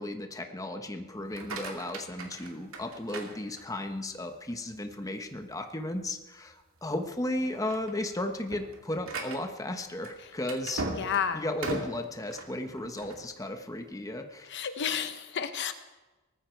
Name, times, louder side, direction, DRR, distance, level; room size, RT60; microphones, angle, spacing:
voice 1, 0.0-10.8 11.3-14.5, left 1 dB, 15° left, 6 dB, 1.1 m, -35 dB
sound 1, 1.2-4.0 4.5-4.9 5.4-5.5 5.9-6.1 6.8-7.0 7.4-13.2, right 2 dB, 65° right, 2.4 m, -39 dB
voice 2, 11.0-11.4 14.5-15.7, left 8 dB, 55° left, 9 dB, 0.8 m, -31 dB
19.0 x 14.5 x 4.6 m, 1.1 s
head